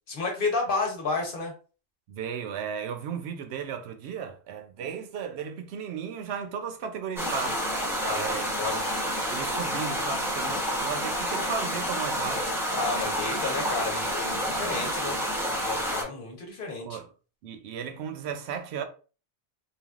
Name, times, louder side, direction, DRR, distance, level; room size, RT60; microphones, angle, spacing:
voice 1, 0.1-1.5 8.0-8.8 12.7-15.2 15.5-17.0, left 3 dB, 50° left, 1.1 m, -31 dB
voice 2, 2.1-7.6 8.1-8.5 9.3-12.6 14.5-14.9 16.8-17.1 17.4-18.8, right 7 dB, 70° right, 0.8 m, -35 dB
sound 1, 7.2-16.0, equal, 5° right, 0.6 m, -29 dB
3.3 x 2.3 x 2.3 m
omnidirectional pair, 1.2 m